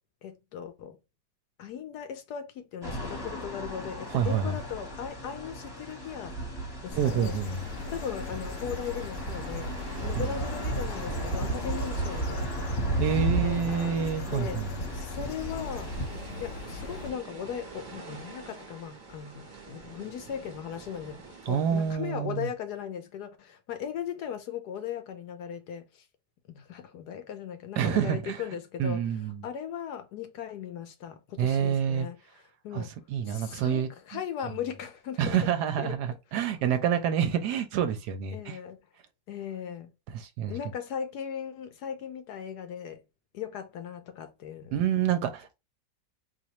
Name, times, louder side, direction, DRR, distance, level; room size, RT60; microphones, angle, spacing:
voice 1, 0.2-1.0 1.6-6.4 6.8-7.4 7.9-12.8 13.2-14.0 14.3-14.6 14.9-16.0 16.4-26.0 26.5-29.0 29.4-32.2 32.6-32.9 33.2-35.4 35.8-36.0 38.3-38.8 39.3-39.9 40.5-43.0 43.3-44.7, left 8 dB, 70° left, 1.1 m, -38 dB
sound 1, 2.8-16.1, right 1 dB, 15° left, 0.9 m, -34 dB
voice 2, 4.1-4.6 6.9-7.6 10.2-10.3 13.0-14.7 21.5-22.5 27.8-28.4 28.8-29.4 31.4-32.1 32.7-33.9 35.2-38.6 40.1-40.6 44.7-45.5, right 8 dB, 75° right, 1.1 m, -28 dB
sound 2, 6.9-17.1, left 5 dB, 85° left, 0.6 m, -41 dB
sound 3, 6.9-21.9, right 4 dB, 30° right, 1.0 m, -47 dB
4.2 x 2.5 x 2.9 m
omnidirectional pair, 2.0 m